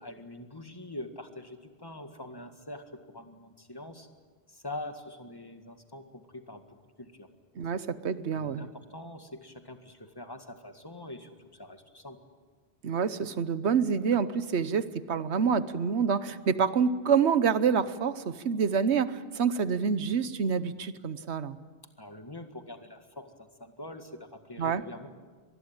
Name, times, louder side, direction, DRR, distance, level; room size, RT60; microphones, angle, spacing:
voice 1, 0.0-4.1 4.5-7.3 8.3-12.2 22.0-25.1, left 1 dB, 20° left, 6 dB, 1.9 m, -44 dB
voice 2, 7.6-8.7 12.8-21.6 24.6-24.8, right 6 dB, 80° right, 14 dB, 1.2 m, -27 dB
25.0 x 20.5 x 8.9 m, 1.4 s
omnidirectional pair, 1.1 m